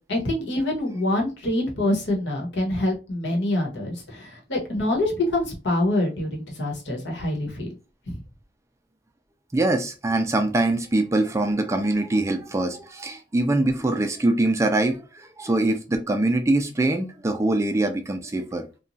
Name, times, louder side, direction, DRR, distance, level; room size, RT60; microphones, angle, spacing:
voice 1, 0.1-7.8 8.1-8.2, left 1 dB, 70° left, 1.1 m, -25 dB
voice 2, 9.5-18.6, right 2 dB, 15° right, 0.3 m, -23 dB
3.0 x 2.2 x 2.6 m
head